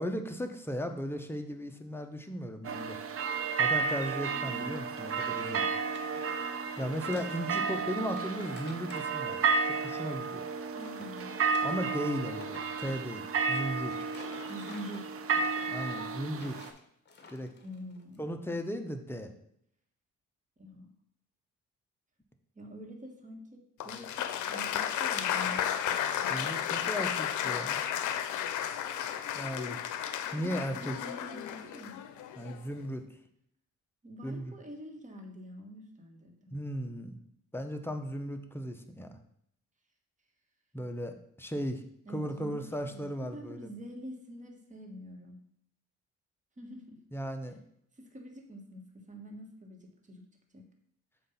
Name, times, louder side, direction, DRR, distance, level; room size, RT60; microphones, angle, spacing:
voice 1, 0.0-3.0 3.6-5.6 6.8-9.4 9.6-10.5 11.6-13.9 15.7-16.6 17.3-17.5 18.2-19.3 26.3-27.8 29.3-29.8 30.3-31.0 32.4-33.0 34.2-34.6 36.5-37.2 37.5-39.2 40.7-41.8 42.1-43.7 47.1-47.6, equal, 10° left, 5 dB, 0.7 m, -36 dB
sound 1, 2.6-16.7, right 5 dB, 50° right, 0.7 m, -32 dB
sound 2, 3.8-4.2 4.4-7.8 8.0-10.5 10.8-18.2, left 3 dB, 35° left, 1.2 m, -54 dB
voice 2, 10.7-11.4 14.5-15.0 16.3-16.4 17.6-18.3 20.6-20.9 22.5-25.6 30.4-32.0 34.0-36.5 42.0-45.4 46.6-47.0 48.0-48.8 49.1-50.2 50.5-50.7, equal, 25° right, 3 dB, 1.4 m, -46 dB
Applause, 23.8-32.7, left 10 dB, 75° left, 0.6 m, -33 dB
7.5 x 2.6 x 5.6 m, 0.71 s
cardioid pair, 90°, 30 cm